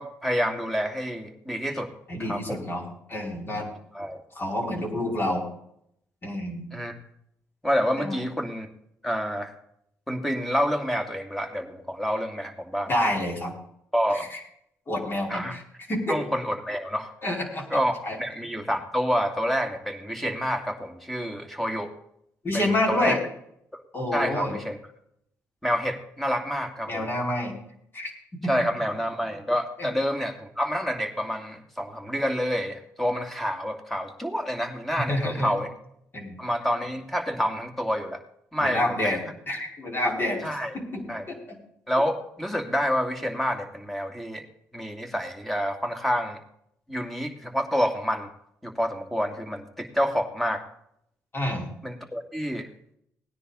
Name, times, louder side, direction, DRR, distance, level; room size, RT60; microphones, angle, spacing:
voice 1, 0.0-1.9 2.2-2.6 3.9-4.2 6.7-7.0 7.6-8.7 9.0-9.5 10.1-12.9 13.9-14.3 15.3-15.6 16.1-17.1 17.7-17.9 18.2-21.9 22.5-23.2 24.1-24.8 25.6-27.1 28.5-35.7 36.4-38.2 38.5-39.1 40.4-40.7 41.1-41.3 41.9-44.4 44.7-46.4 46.9-48.3 48.6-50.6 51.8-52.7, equal, 5° left, 4 dB, 2.7 m, -28 dB
voice 2, 2.1-3.7 4.4-5.4 6.2-6.7 8.0-8.2 12.9-13.5 14.1-14.4 14.9-15.6 15.9-16.2 17.2-17.7 18.0-18.2 22.4-23.2 23.9-24.6 26.9-27.5 27.9-28.1 28.4-28.5 29.8-29.9 35.0-35.5 36.1-36.4 38.6-39.2 39.5-40.5 40.7-41.6 51.3-51.7, left 1 dB, 35° left, 0 dB, 5.3 m, -28 dB
18.5 x 9.9 x 4.2 m, 0.72 s
cardioid pair, 75°, 6 cm